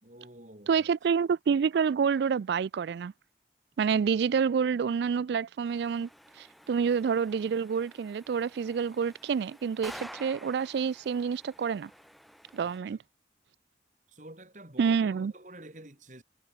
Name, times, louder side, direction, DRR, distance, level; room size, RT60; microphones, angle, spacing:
voice 1, 0.0-0.9 12.6-13.0 14.1-16.2, right 1 dB, 45° right, 3.6 m, -49 dB
voice 2, 0.7-3.1 3.8-6.1 6.4-11.9 12.5-13.0 14.8-15.3, right 6 dB, 70° right, 0.3 m, -28 dB
sound 1, 5.7-12.8, equal, ahead, 1.3 m, -50 dB
head